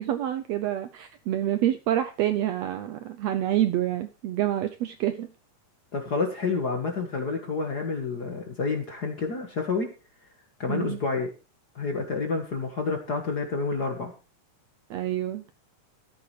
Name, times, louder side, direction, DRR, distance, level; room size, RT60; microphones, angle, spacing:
voice 1, 0.0-5.3 10.7-11.0 14.9-15.4, right 12 dB, 75° right, 1.6 m, -27 dB
voice 2, 5.9-9.9 10.6-11.3 11.7-14.1, left 4 dB, 40° left, 1.5 m, -29 dB
13.5 x 10.5 x 3.3 m
omnidirectional pair, 3.6 m